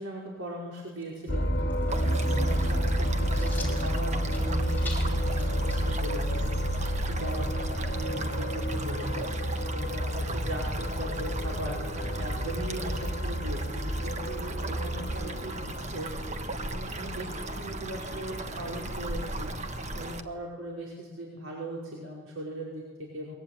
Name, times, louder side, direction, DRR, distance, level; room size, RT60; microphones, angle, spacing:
voice 1, 0.0-23.4, right 1 dB, 80° right, -3 dB, 5.1 m, -39 dB
sound 1, 0.8-7.2, left 3 dB, 10° left, 5.3 m, -47 dB
sound 2, 1.3-20.2, equal, 50° left, 2.8 m, -31 dB
sound 3, 1.9-20.2, right 2 dB, 35° right, 1.4 m, -37 dB
23.0 x 22.5 x 9.3 m, 1.5 s
head